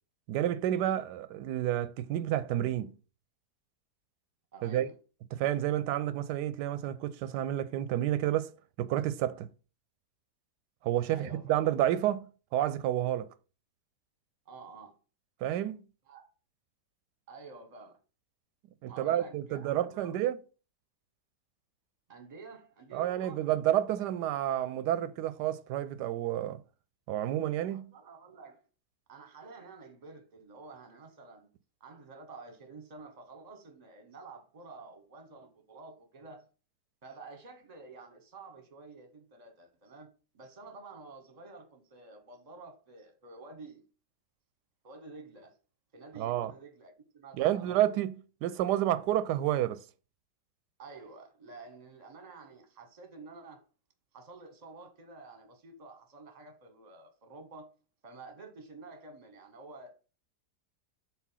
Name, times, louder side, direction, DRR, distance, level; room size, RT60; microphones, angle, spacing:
voice 1, 0.3-2.9 4.6-4.9 5.3-8.5 8.8-9.5 10.8-12.3 12.5-13.3 15.4-15.8 18.8-20.4 22.9-26.6 27.1-27.9 46.2-46.5 47.3-49.8, right 12 dB, 90° right, 1.2 m, -30 dB
voice 2, 4.5-4.9 11.1-11.6 14.5-14.9 16.1-16.3 17.3-18.0 18.9-20.2 22.1-23.4 27.7-28.7 29.1-31.5 31.8-36.5 37.0-43.8 44.8-45.6 45.9-47.7 50.8-53.6 54.1-57.7 58.0-59.9, right 3 dB, 30° right, 0.9 m, -50 dB
4.5 x 4.0 x 5.6 m
omnidirectional pair, 1.7 m